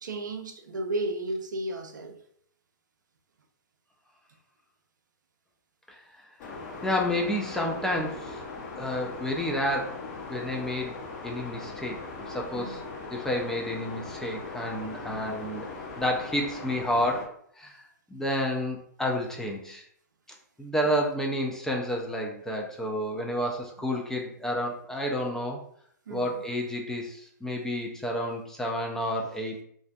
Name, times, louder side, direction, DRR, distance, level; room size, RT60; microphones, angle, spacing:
voice 1, 0.0-2.2 12.5-12.8 15.2-15.4 20.8-20.9 26.1-26.4, right 2 dB, 75° right, 4 dB, 0.5 m, -34 dB
sound 1, 6.4-17.3, left 3 dB, 40° left, 0.6 m, -39 dB
voice 2, 6.8-8.4 8.8-10.0 10.3-12.0 12.3-12.8 13.1-15.7 16.0-17.8 18.1-19.8 20.6-25.6 26.1-29.6, equal, 5° left, 0 dB, 0.3 m, -30 dB
2.5 x 2.4 x 2.2 m, 0.65 s
hypercardioid pair, 120°, 10 cm